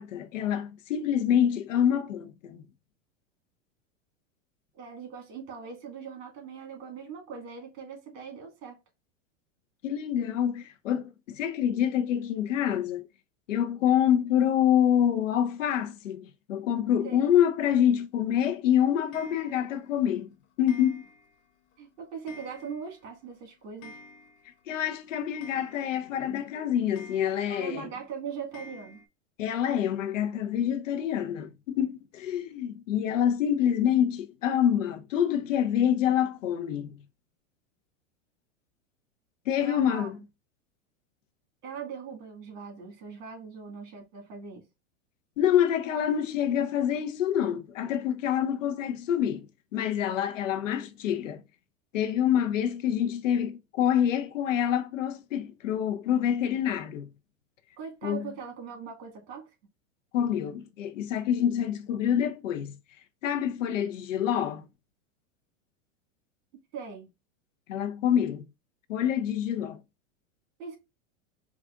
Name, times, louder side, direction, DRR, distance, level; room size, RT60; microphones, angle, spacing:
voice 1, 0.0-2.7 9.8-13.1 13.5-20.3 20.6-21.0 24.7-27.9 29.4-37.0 39.5-40.2 45.4-49.5 49.7-51.4 51.9-57.1 58.0-58.3 60.1-62.7 63.2-64.6 67.7-68.5 68.9-69.8, left 9 dB, 85° left, 0.8 m, -26 dB
voice 2, 4.8-8.8 17.0-17.3 21.8-24.0 27.4-29.0 39.6-40.1 41.6-44.6 57.8-59.5 66.7-67.1 70.6-70.8, right 6 dB, 55° right, 2.0 m, -40 dB
Clock, 19.1-19.8 20.7-21.4 21.7-21.8 22.3-23.0 23.3-23.4 23.6-24.6 24.9-25.0 25.4-26.2 27.0-27.7 28.5-29.1, left 3 dB, 30° left, 0.8 m, -49 dB
4.7 x 2.5 x 2.4 m
supercardioid pair, 135°, 37 cm